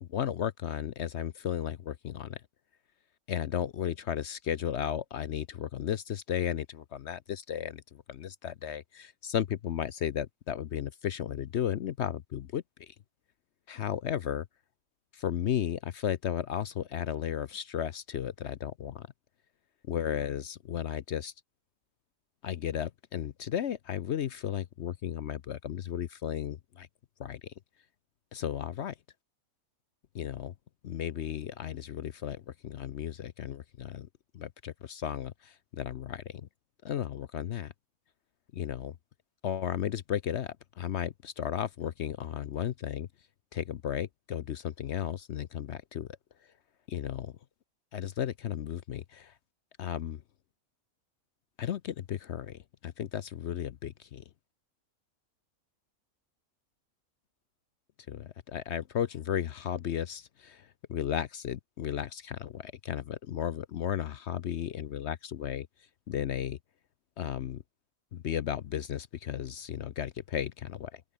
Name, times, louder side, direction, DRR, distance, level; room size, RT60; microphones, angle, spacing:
voice 1, 0.0-2.4 3.3-12.9 13.7-14.5 15.1-19.1 19.9-21.3 22.4-26.9 27.2-27.5 28.3-28.9 30.1-30.5 30.8-34.1 34.3-36.5 36.8-37.7 38.5-38.9 39.4-43.1 43.5-46.1 46.9-47.3 47.9-49.3 49.8-50.2 51.6-54.2 58.1-65.7 66.1-66.6 67.2-67.6 68.1-71.0, left 9 dB, 60° left, 0.8 m, -34 dB
open air
omnidirectional pair, 1.5 m